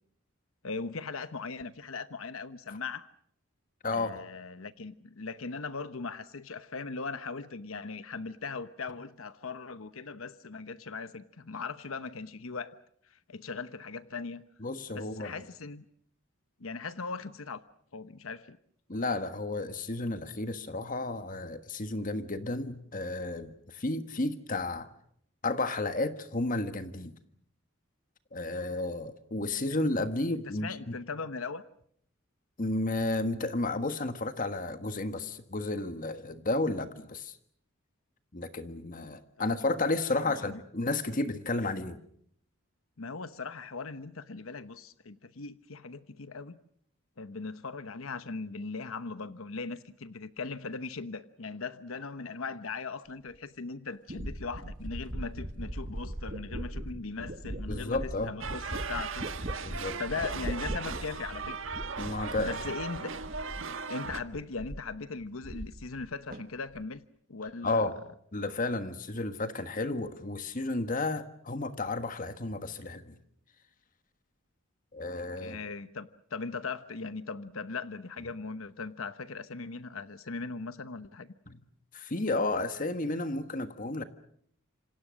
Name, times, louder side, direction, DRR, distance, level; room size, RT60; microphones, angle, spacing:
voice 1, 0.6-3.1 3.9-12.8 13.1-14.4 14.9-15.8 16.6-17.6 17.9-18.6 30.6-31.6 40.2-40.6 43.0-46.6 47.2-59.7 60.0-61.6 62.4-63.1 63.9-67.0 67.3-67.9 75.4-81.3, left 4 dB, 80° left, 12 dB, 1.0 m, -39 dB
voice 2, 3.8-4.2 14.6-15.3 18.9-24.9 25.4-27.2 28.3-30.9 32.6-37.4 38.3-42.0 57.7-58.3 59.6-60.0 62.0-62.6 67.6-67.9 68.3-73.2 74.9-75.6 81.5-81.6 81.9-84.0, left 2 dB, 40° left, 10 dB, 1.5 m, -32 dB
sound 1, 53.3-53.4 54.1-63.8 64.0-64.9 65.2-66.1 66.3-66.8, right 1 dB, 40° right, 1.6 m, -39 dB
sound 2, 58.4-64.2, right 5 dB, 65° right, 1.5 m, -38 dB
27.5 x 26.5 x 6.4 m, 0.69 s
head